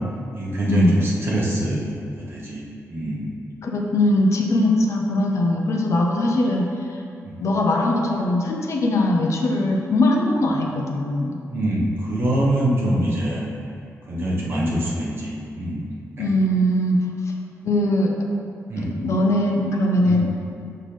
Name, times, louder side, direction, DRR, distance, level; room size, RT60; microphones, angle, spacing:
voice 1, 0.3-2.6 2.9-3.3 7.2-7.4 11.5-13.4 14.1-15.8 16.2-16.3 18.7-18.9 20.0-20.3, right 1 dB, 45° right, -5 dB, 1.2 m, -24 dB
voice 2, 3.6-7.0 7.4-11.4 16.2-17.0 17.6-18.1 18.8-20.4, left 1 dB, 60° left, 1 dB, 0.7 m, -21 dB
6.5 x 5.8 x 3.4 m, 2.5 s
wide cardioid pair, 170°, 6 cm